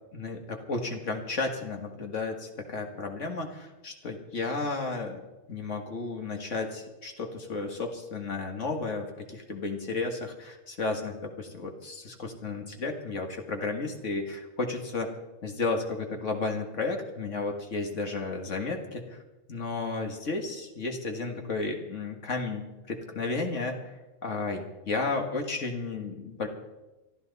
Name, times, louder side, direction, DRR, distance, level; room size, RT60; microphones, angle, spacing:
voice 1, 0.1-5.2 5.5-15.1 15.4-19.2 19.5-22.6 22.9-23.9 24.2-26.5, left 3 dB, 70° left, 3 dB, 2.1 m, -33 dB
22.5 x 13.0 x 4.1 m, 1.1 s
omnidirectional pair, 1.3 m